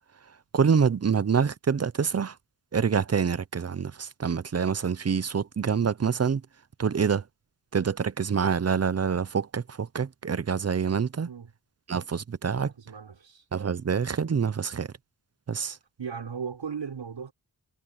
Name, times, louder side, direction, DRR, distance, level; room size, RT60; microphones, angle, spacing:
voice 1, 0.5-2.4 2.7-6.4 6.8-7.2 7.7-11.3 11.9-12.7 13.5-14.9 15.5-15.8, right 6 dB, 35° right, 0.6 m, -26 dB
voice 2, 12.5-13.5 16.0-17.3, right 6 dB, 80° right, 5.7 m, -37 dB
wide cardioid pair, 105°, 43 cm